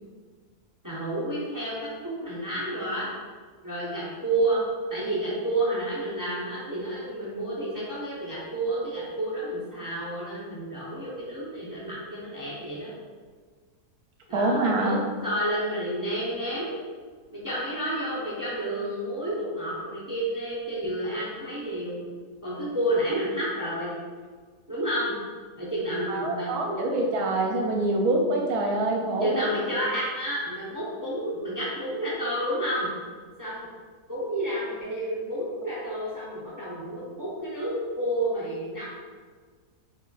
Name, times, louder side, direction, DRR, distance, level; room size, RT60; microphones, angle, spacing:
voice 1, 0.8-1.8 2.0-3.1 3.6-4.6 4.9-12.9 14.3-16.7 17.3-22.0 22.4-24.0 24.7-25.1 25.6-26.6 29.2-32.9 33.4-33.7 34.1-38.8, right 1 dB, 20° right, -8 dB, 0.7 m, -30 dB
voice 2, 14.3-15.0 26.1-29.5, right 2 dB, 75° right, 0 dB, 1.1 m, -25 dB
4.3 x 4.2 x 2.4 m, 1.5 s
omnidirectional pair, 1.6 m